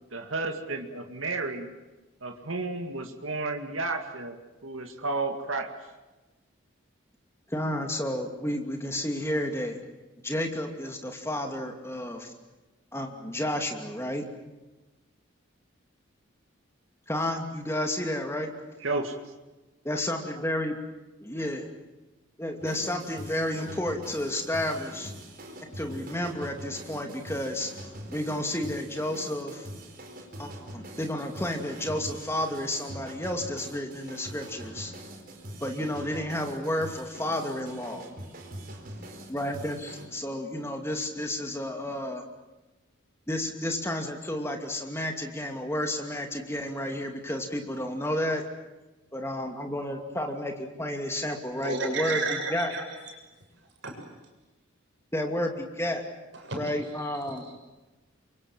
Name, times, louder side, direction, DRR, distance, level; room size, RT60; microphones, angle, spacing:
voice 1, 0.1-1.7 2.2-5.7 18.8-19.1, right 3 dB, 80° right, 4 dB, 2.3 m, -32 dB
voice 2, 7.5-9.8 10.2-12.3 12.9-14.2 17.1-18.5 19.8-20.7 21.2-21.7 22.4-25.1 25.6-27.7 28.1-29.7 30.4-34.9 35.6-38.1 39.3-42.2 43.3-48.4 49.1-52.2 52.5-52.7 55.1-56.0 56.5-57.5, left 1 dB, 10° left, 4 dB, 2.6 m, -31 dB
sound 1, 22.6-40.1, right 1 dB, 45° right, 4.4 m, -43 dB
voice 3, 51.6-53.1 53.8-53.9 56.3-56.6 57.2-57.5, right 3 dB, 65° right, 2 dB, 6.9 m, -32 dB
28.0 x 24.0 x 7.5 m, 1.1 s
head